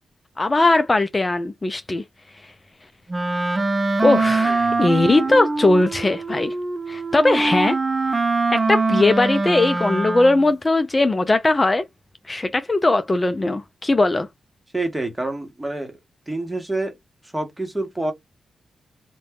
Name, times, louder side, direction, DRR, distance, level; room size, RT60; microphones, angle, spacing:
voice 1, 0.4-2.0 4.0-6.5 6.9-7.8 8.5-11.8 12.3-14.3, left 2 dB, 30° left, 0.4 m, -19 dB
Wind instrument woodwind instrument, 3.1-10.5, right 3 dB, 35° right, 0.5 m, -23 dB
voice 2, 4.4-4.8 5.2-5.4 14.7-16.0 16.3-17.0 17.2-18.1, right 2 dB, 15° right, 1.2 m, -28 dB
2.5 x 2.2 x 3.5 m
supercardioid pair, 40°, 0 cm